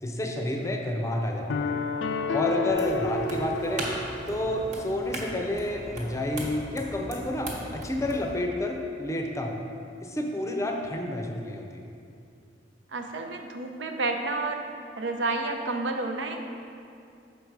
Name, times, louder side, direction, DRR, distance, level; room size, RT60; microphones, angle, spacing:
voice 1, 0.0-1.7 2.3-3.9 4.3-9.6 10.0-11.8, left 1 dB, 15° left, 2 dB, 0.6 m, -30 dB
sound 1, 1.5-4.7, left 3 dB, 75° left, 0.4 m, -30 dB
sound 2, 2.7-8.4, right 1 dB, 40° right, 1.3 m, -38 dB
voice 2, 12.9-14.6 14.9-16.4, right 3 dB, 75° right, 4 dB, 0.6 m, -30 dB
6.5 x 5.2 x 4.7 m, 2.5 s
head